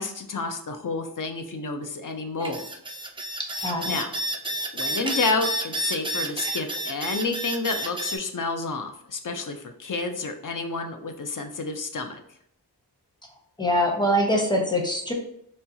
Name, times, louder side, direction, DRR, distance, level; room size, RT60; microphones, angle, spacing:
voice 1, 0.0-2.7 3.9-4.1 4.7-12.2, left 3 dB, 50° left, 6 dB, 0.6 m, -30 dB
sound 1, 2.4-8.2, right 1 dB, 15° right, 0.3 m, -30 dB
voice 2, 3.6-4.0 13.6-15.1, equal, 10° left, 0 dB, 0.8 m, -23 dB
4.2 x 2.3 x 2.7 m, 0.71 s
wide cardioid pair, 45°, 42 cm